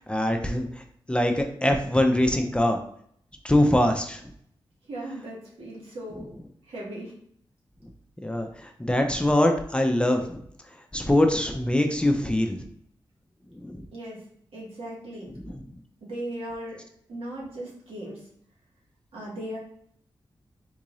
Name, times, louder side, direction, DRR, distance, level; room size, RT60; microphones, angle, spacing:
voice 1, 0.1-0.7 1.1-2.8 3.4-4.2 8.2-10.4 10.9-12.6 13.6-13.8 15.4-15.6, left 1 dB, 10° left, 4 dB, 0.5 m, -23 dB
voice 2, 4.9-6.3 6.7-7.1 13.9-14.2 14.5-15.3 16.0-16.8 17.1-18.2 19.1-19.6, right 1 dB, 90° right, -5 dB, 1.4 m, -37 dB
3.8 x 2.5 x 3.0 m, 0.65 s
cardioid pair, 60°, 9 cm